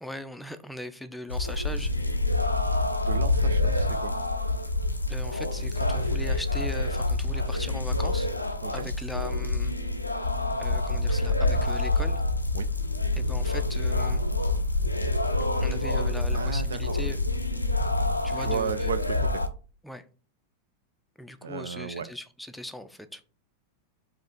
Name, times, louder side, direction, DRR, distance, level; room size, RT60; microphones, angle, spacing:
voice 1, 0.0-1.9 5.1-8.3 8.7-9.7 10.6-12.2 13.1-14.2 15.6-17.2 18.2-18.9 19.8-20.0 21.2-23.2, left 1 dB, ahead, 0.4 m, -39 dB
sound 1, 1.3-19.5, left 2 dB, 85° left, 0.4 m, -27 dB
voice 2, 3.0-4.1 8.6-8.9 12.5-12.7 16.3-16.8 18.3-19.4 21.4-22.1, right 6 dB, 65° right, 0.3 m, -34 dB
4.7 x 2.5 x 3.7 m
figure-of-eight pair, 90°, 0 cm